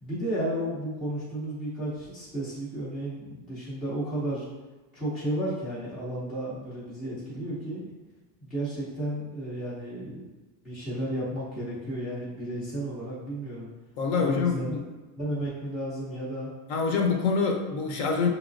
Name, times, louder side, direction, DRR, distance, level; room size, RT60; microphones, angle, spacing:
voice 1, 0.0-4.4 4.9-7.9 8.4-10.3 10.6-13.7 14.2-14.8 15.2-16.5, right 1 dB, ahead, -12 dB, 0.4 m, -33 dB
voice 2, 14.0-14.8 16.7-18.3, left 5 dB, 45° left, 2 dB, 0.7 m, -25 dB
5.8 x 3.1 x 2.5 m, 1.2 s
supercardioid pair, 170°, 48 cm